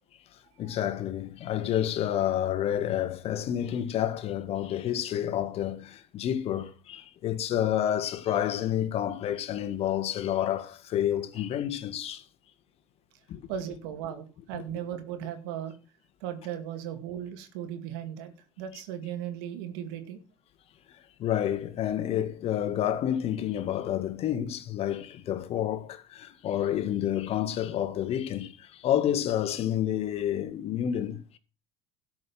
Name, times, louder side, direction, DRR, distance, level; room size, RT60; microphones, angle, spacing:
voice 1, 0.6-12.2 13.3-13.4 14.5-14.6 21.2-31.4, left 11 dB, 55° left, 1.7 m, -29 dB
voice 2, 13.5-15.8 16.2-18.3 18.6-20.2, right 10 dB, 80° right, 2.3 m, -37 dB
12.5 x 6.4 x 5.8 m
supercardioid pair, 80°, 12 cm